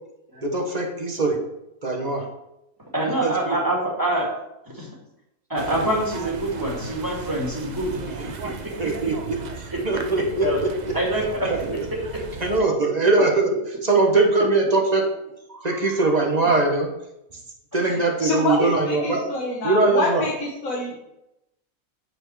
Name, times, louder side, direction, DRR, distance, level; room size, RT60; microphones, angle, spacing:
voice 1, 0.4-1.4 1.8-2.2 3.2-3.6 8.8-9.4 9.8-11.0 11.4-11.8 12.4-13.5 13.8-15.1 15.5-16.9 17.7-19.2 19.6-20.2, right 3 dB, 30° right, 1 dB, 1.1 m, -21 dB
voice 2, 2.9-4.3 4.7-4.9 5.5-8.5 8.8-8.9 10.4-10.6 10.9-11.5, right 1 dB, 15° right, -5 dB, 2.3 m, -25 dB
sound 1, 5.6-12.6, right 4 dB, 60° right, 0.4 m, -36 dB
voice 3, 17.8-21.0, left 1 dB, 65° left, -3 dB, 1.7 m, -26 dB
8.9 x 4.5 x 4.7 m, 0.87 s
omnidirectional pair, 1.6 m